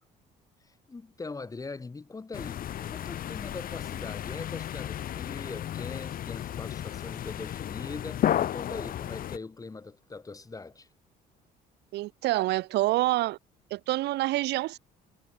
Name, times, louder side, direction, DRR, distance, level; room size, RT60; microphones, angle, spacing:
voice 1, 0.7-10.9, left 3 dB, 20° left, 3.6 m, -42 dB
sound 1, 2.3-9.4, left 11 dB, 55° left, 2.2 m, -33 dB
voice 2, 11.9-13.4 13.7-14.8, right 17 dB, 80° right, 4.1 m, -27 dB
cardioid pair, 110°, 17 cm